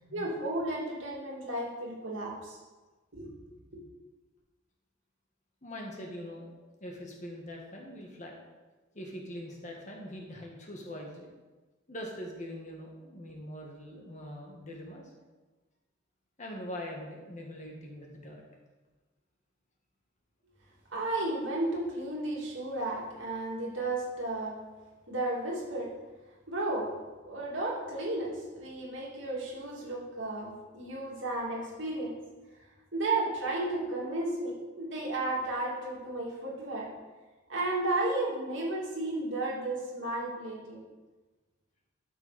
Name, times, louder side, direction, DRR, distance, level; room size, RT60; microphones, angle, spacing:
voice 1, 0.1-2.6 3.1-3.3 3.7-3.8 20.9-24.6 25.1-25.9 26.5-27.0 27.3-32.2 32.9-36.9 37.5-40.8, right 2 dB, 65° right, -4 dB, 2.7 m, -33 dB
voice 2, 5.6-6.5 6.8-8.4 8.9-11.3 11.9-15.0 16.4-18.4, equal, 35° left, 0 dB, 1.6 m, -42 dB
12.5 x 6.0 x 4.2 m, 1.2 s
head